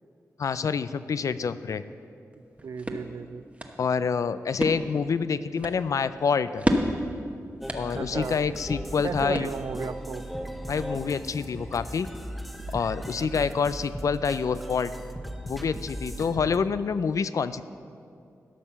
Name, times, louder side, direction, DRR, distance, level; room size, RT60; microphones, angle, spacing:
voice 1, 0.4-1.8 3.8-6.6 7.7-9.5 10.7-12.1 12.7-14.9 15.4-17.6, left 6 dB, 65° left, 14 dB, 0.4 m, -27 dB
sound 1, 2.3-9.9, equal, 20° right, 1.1 m, -33 dB
voice 2, 2.6-3.5 8.0-8.4 9.0-10.3 13.2-13.4, right 6 dB, 65° right, 15 dB, 0.3 m, -35 dB
sound 2, 7.6-16.6, equal, ahead, 0.9 m, -37 dB
12.5 x 5.5 x 7.0 m, 2.5 s
cardioid pair, 50°, 6 cm